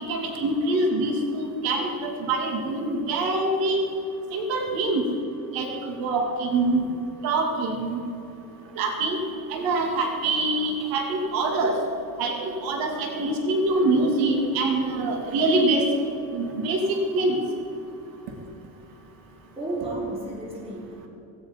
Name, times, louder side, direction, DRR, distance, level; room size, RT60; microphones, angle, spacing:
voice 1, 0.0-3.8 4.3-5.0 5.5-6.9 7.2-8.0 8.8-9.2 9.5-11.8 12.2-15.9 16.3-17.4, right 2 dB, 85° right, 2 dB, 2.7 m, -24 dB
voice 2, 19.6-21.1, right 2 dB, 15° right, -3 dB, 3.6 m, -32 dB
16.5 x 16.5 x 5.3 m, 2.7 s
cardioid pair, 175°, 34 cm